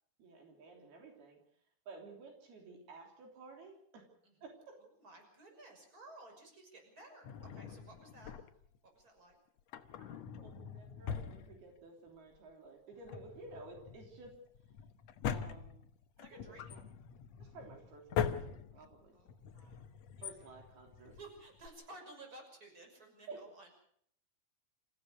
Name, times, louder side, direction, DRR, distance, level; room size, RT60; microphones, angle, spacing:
voice 1, 0.2-1.4 1.9-4.0 4.4-4.8 10.0-14.4 15.3-15.8 16.3-16.8 17.4-19.2 20.2-21.1 23.3-23.4, right 3 dB, 80° right, 2 dB, 5.3 m, -53 dB
voice 2, 5.0-8.4 8.8-9.4 16.2-16.8 19.1-19.9 20.2-20.5 21.1-23.7, right 2 dB, 20° right, 3 dB, 6.4 m, -55 dB
Drawer open or close, 7.2-8.8 9.6-12.1 12.4-12.5 12.9-21.7, left 8 dB, 70° left, 1.6 m, -42 dB
28.5 x 15.5 x 6.5 m, 0.66 s
omnidirectional pair, 4.5 m